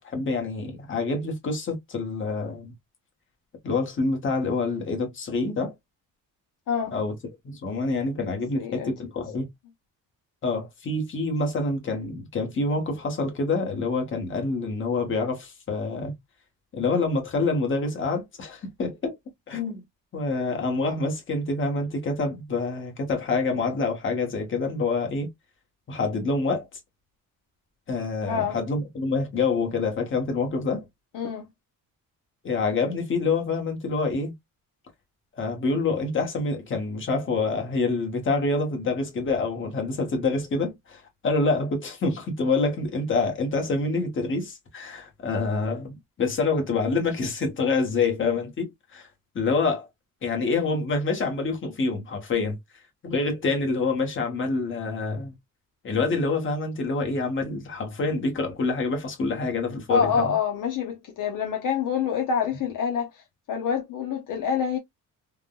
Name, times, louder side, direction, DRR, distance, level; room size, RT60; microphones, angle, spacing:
voice 1, 0.0-2.7 3.6-5.7 6.9-7.1 7.4-9.5 10.4-16.1 16.7-19.2 19.5-19.8 20.1-25.3 25.9-26.8 27.9-30.8 32.4-34.3 35.3-49.1 49.3-49.9 50.2-52.6 53.0-55.3 55.8-60.3, left 3 dB, 35° left, 1.1 m, -26 dB
voice 2, 8.5-9.1 28.3-28.6 31.1-31.5 59.9-63.2 63.5-64.8, left 6 dB, 60° left, 0.8 m, -26 dB
3.5 x 2.2 x 2.2 m
cardioid pair, 145°, 35 cm